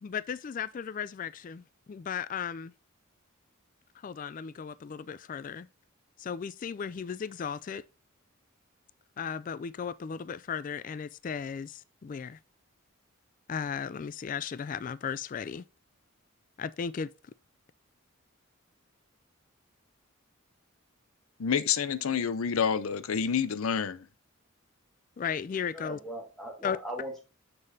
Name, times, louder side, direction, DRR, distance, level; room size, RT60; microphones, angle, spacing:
voice 1, 0.0-2.7 4.0-5.7 6.2-7.8 9.2-12.4 13.5-15.6 16.6-17.1 25.2-26.0 26.6-26.8, left 7 dB, 40° left, 0.3 m, -35 dB
voice 2, 21.4-24.0, left 7 dB, 85° left, 0.6 m, -28 dB
voice 3, 25.7-27.2, right 1 dB, ahead, 1.8 m, -39 dB
6.9 x 6.5 x 2.7 m
head